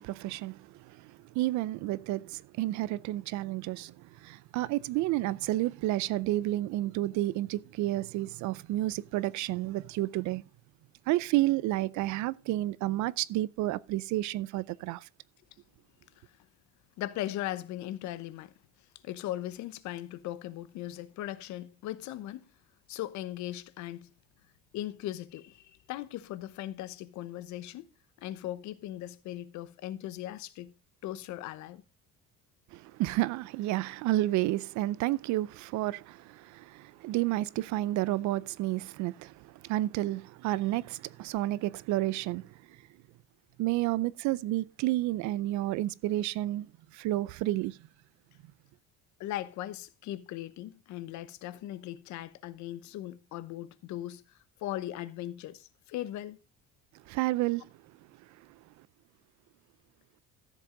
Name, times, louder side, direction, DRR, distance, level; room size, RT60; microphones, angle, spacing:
voice 1, 0.0-10.4 11.1-15.1 32.7-42.8 43.6-46.7 46.9-47.8 57.1-57.7, right 16 dB, 60° right, 0.5 m, -31 dB
voice 2, 17.0-18.5 19.0-22.5 22.9-24.1 24.7-27.9 28.2-30.7 31.0-31.8 49.2-54.2 54.6-56.4, left 14 dB, 60° left, 0.9 m, -38 dB
13.5 x 7.4 x 3.8 m
cardioid pair, 155°, 33 cm